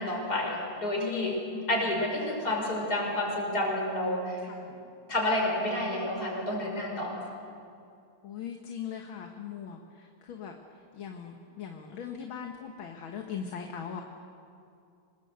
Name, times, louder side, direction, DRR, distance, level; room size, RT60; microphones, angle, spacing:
voice 1, 0.0-1.3 1.7-4.4 5.1-7.1, left 1 dB, 45° left, -1 dB, 6.0 m, -29 dB
voice 2, 1.0-1.9 4.4-4.7 7.3-7.4 8.2-10.5 10.9-14.0, left 8 dB, 70° left, 3 dB, 2.1 m, -40 dB
26.5 x 20.0 x 8.0 m, 2.5 s
omnidirectional pair, 2.3 m